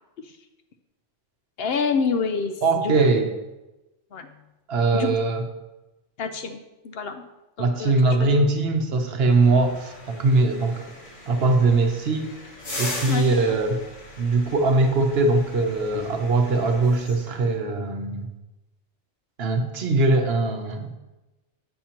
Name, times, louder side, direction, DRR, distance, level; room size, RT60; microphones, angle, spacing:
voice 1, 1.6-2.9 4.1-4.3 4.9-5.2 6.2-7.2 7.6-8.4 13.1-13.4, left 5 dB, 65° left, 7 dB, 0.7 m, -28 dB
voice 2, 2.6-3.3 4.7-5.4 7.6-10.9 11.3-12.3 12.8-13.8 14.2-18.3 19.4-20.9, right 3 dB, 60° right, 5 dB, 0.9 m, -21 dB
sound 1, 9.3-17.6, left 1 dB, 90° left, 2.1 m, -39 dB
7.7 x 7.3 x 2.9 m, 1.0 s
omnidirectional pair, 1.2 m